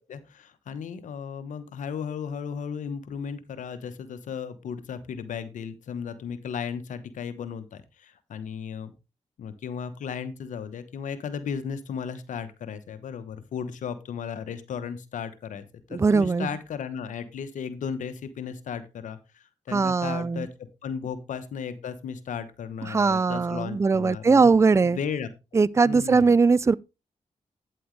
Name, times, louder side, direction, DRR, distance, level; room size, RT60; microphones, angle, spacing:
voice 1, 0.1-8.9 9.4-20.5 20.8-24.5 24.8-25.3 25.8-26.4, left 7 dB, 80° left, 1.1 m, -35 dB
voice 2, 15.9-16.5 19.7-20.5 22.8-25.0 25.5-26.7, right 4 dB, 20° right, 0.3 m, -20 dB
9.3 x 7.8 x 3.2 m
cardioid pair, 55°, 13 cm